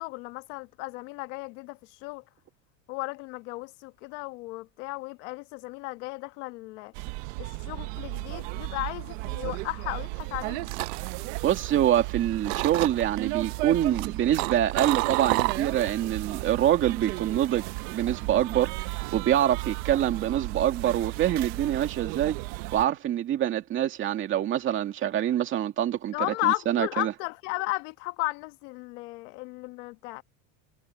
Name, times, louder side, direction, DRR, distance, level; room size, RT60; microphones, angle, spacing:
voice 1, 0.0-2.2 2.9-6.9 7.4-10.7 26.1-30.2, left 22 dB, 60° left, 1.4 m, -34 dB
sound 1, 6.9-22.9, right 22 dB, 60° right, 1.1 m, -34 dB
sound 2, 10.2-12.1 12.4-13.2 13.7-16.0 16.3-16.7, right 24 dB, 75° right, 0.7 m, -30 dB
voice 2, 11.4-17.6 17.9-22.4 22.7-27.1, right 11 dB, 30° right, 2.3 m, -25 dB
cardioid pair, 170°, 40 cm